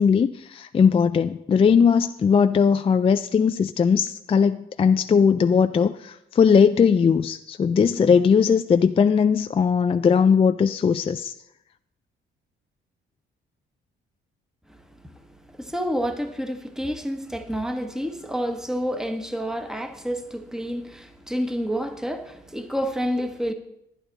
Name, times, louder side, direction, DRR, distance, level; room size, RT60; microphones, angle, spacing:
voice 1, 0.0-11.3, left 6 dB, 30° left, 0.4 m, -19 dB
voice 2, 15.5-23.5, equal, 5° right, 1.1 m, -29 dB
11.0 x 10.0 x 4.1 m
cardioid pair, 90°, 20 cm